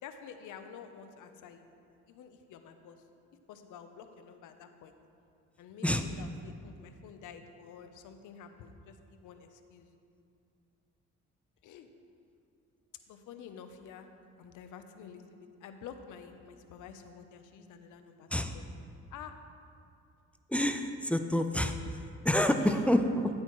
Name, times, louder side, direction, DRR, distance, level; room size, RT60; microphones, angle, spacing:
voice 1, 0.0-1.7 2.1-3.0 3.5-4.9 5.6-9.0 9.2-9.9 11.6-11.9 13.1-14.1 14.4-18.3 18.5-18.7 19.1-19.3 22.6-22.8, left 7 dB, 85° left, 7 dB, 0.8 m, -49 dB
voice 2, 20.5-21.8 22.2-23.3, left 1 dB, 5° left, 7 dB, 0.5 m, -27 dB
13.0 x 8.8 x 3.1 m, 2.5 s
cardioid pair, 90°, 30 cm